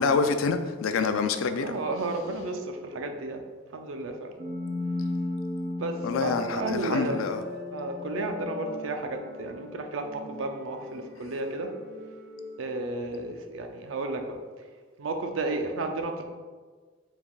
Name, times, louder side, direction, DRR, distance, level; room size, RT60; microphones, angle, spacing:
voice 1, 0.0-1.7 6.0-7.4, left 5 dB, 90° left, 0.4 m, -26 dB
voice 2, 1.6-3.4 3.7-4.3 5.8-7.2 7.7-11.7 12.6-14.4 15.0-16.2, right 2 dB, 85° right, 0.5 m, -32 dB
sound 1, 4.4-13.3, left 2 dB, 50° right, 0.7 m, -37 dB
5.0 x 3.5 x 2.3 m
head